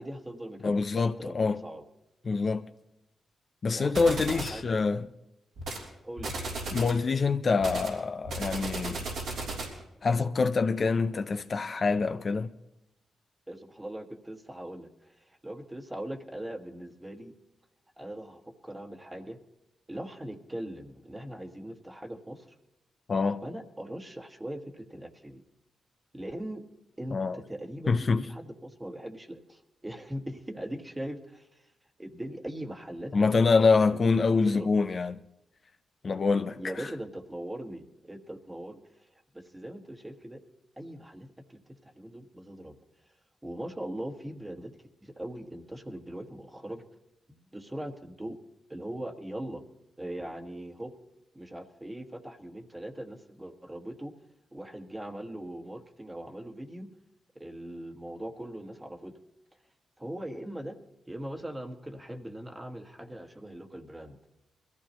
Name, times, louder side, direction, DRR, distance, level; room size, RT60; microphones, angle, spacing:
voice 1, 0.0-1.8 2.2-2.4 3.7-4.9 6.0-6.3 13.5-15.1 15.4-17.3 18.0-19.4 19.9-22.5 23.4-25.4 26.1-26.7 27.0-31.5 32.0-33.4 33.9-34.7 36.5-38.8 39.3-40.4 40.8-42.7 43.4-44.7 45.0-46.8 47.3-48.4 48.7-49.6 50.0-50.9 51.3-54.1 54.5-56.9 57.3-59.1 60.0-60.8 61.1-64.2, right 1 dB, 15° right, 1.5 m, -40 dB
voice 2, 0.6-1.6 2.2-2.6 3.6-5.1 6.7-9.0 10.0-12.5 23.1-23.4 27.1-27.4 27.9-28.2 33.1-35.2 36.0-36.9, left 4 dB, 50° left, 0.6 m, -25 dB
sound 1, 3.9-4.6 5.6-5.9 6.2-7.0 7.6-9.8, right 2 dB, 80° right, 3.3 m, -35 dB
21.5 x 14.5 x 3.1 m
supercardioid pair, 55°, 0 cm